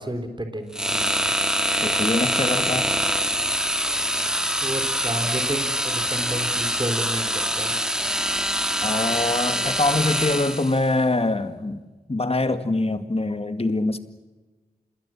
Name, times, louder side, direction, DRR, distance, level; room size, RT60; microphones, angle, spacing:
voice 1, 0.0-1.4 4.6-7.9, right 1 dB, 30° right, 4.0 m, -31 dB
sound 1, 0.7-10.8, equal, 5° right, 2.2 m, -24 dB
voice 2, 1.8-2.9 8.8-11.8 12.1-14.0, left 2 dB, 40° left, 2.2 m, -24 dB
27.5 x 21.0 x 7.4 m
cardioid pair, 40°, 16 cm